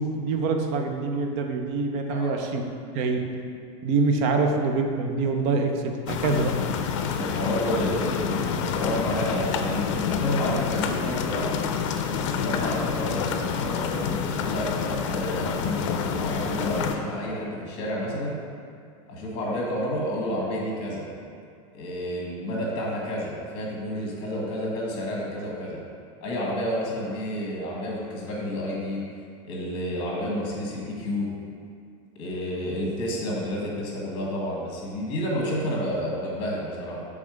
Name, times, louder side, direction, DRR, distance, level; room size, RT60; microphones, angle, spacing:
voice 1, 0.0-2.6 2.9-3.3 3.8-6.5, right 4 dB, 40° right, 4 dB, 0.5 m, -25 dB
voice 2, 2.1-2.4 4.3-4.4 7.1-11.6 12.1-18.4 19.1-21.0 21.7-25.8 26.2-29.0 29.4-31.3 32.1-37.0, equal, 30° left, -4 dB, 1.3 m, -30 dB
sound 1, 6.1-17.0, left 7 dB, 70° left, 0.5 m, -28 dB
6.2 x 3.6 x 4.9 m, 2.4 s
supercardioid pair, 175°, 16 cm